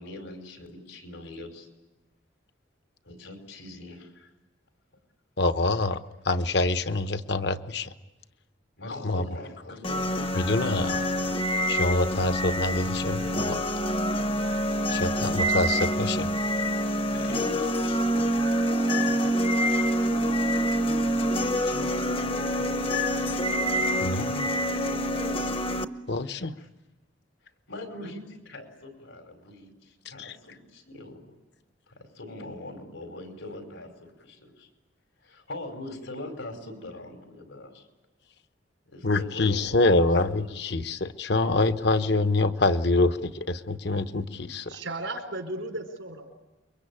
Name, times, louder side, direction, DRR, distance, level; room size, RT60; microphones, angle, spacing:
voice 1, 0.0-1.7 3.0-4.3 6.5-6.6 8.8-10.8 11.5-11.8 14.9-15.3 16.7-18.4 20.0-20.6 21.3-24.0 26.6-26.7 27.7-31.3 31.9-34.7 35.2-37.9 38.9-40.6, left 2 dB, 90° left, 5 dB, 5.2 m, -42 dB
voice 2, 5.4-6.0 6.2-7.9 9.0-9.2 10.3-10.9 11.7-13.6 14.9-16.3 24.0-24.5 26.1-26.6 30.2-30.4 39.0-44.7, left 2 dB, 60° left, 11 dB, 1.0 m, -25 dB
sound 1, 9.8-25.9, equal, 30° left, 0.8 m, -26 dB
voice 3, 44.7-46.3, right 2 dB, 90° right, 5 dB, 4.2 m, -35 dB
29.0 x 23.0 x 8.7 m, 1.1 s
head